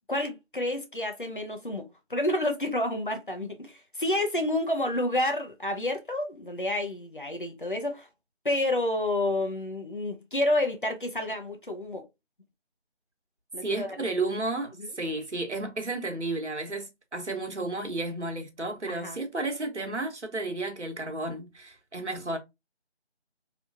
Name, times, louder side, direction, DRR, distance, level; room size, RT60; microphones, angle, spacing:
voice 1, 0.1-8.1 8.4-12.1 13.5-14.0 18.9-19.2, left 1 dB, 50° left, 0.8 m, -29 dB
voice 2, 13.6-22.4, right 2 dB, 80° right, 1.2 m, -32 dB
3.1 x 3.1 x 2.5 m
figure-of-eight pair, 170°, 34 cm